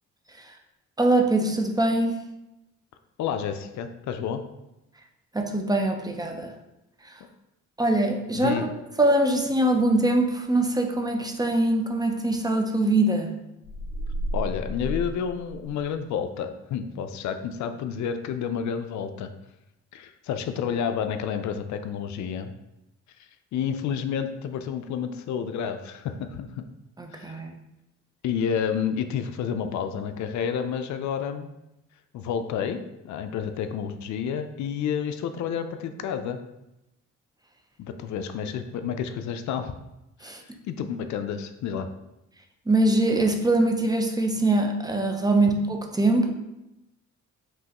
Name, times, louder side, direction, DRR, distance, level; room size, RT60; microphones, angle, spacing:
voice 1, 1.0-2.2 5.3-6.5 7.1-7.2 7.8-8.7 9.0-13.3 27.0-27.5 40.2-40.4 42.7-46.3, right 2 dB, 15° right, 3 dB, 0.5 m, -23 dB
voice 2, 3.2-4.4 8.3-8.7 14.3-19.3 19.9-22.5 23.5-26.6 27.1-27.4 28.2-31.5 32.1-36.4 37.8-39.7 40.2-40.3 40.7-41.9, left 7 dB, 70° left, 8 dB, 0.4 m, -30 dB
sound 1, 13.6-16.0, equal, 20° left, 1.6 m, -32 dB
5.4 x 3.0 x 2.9 m, 0.91 s
cardioid pair, 90°, 30 cm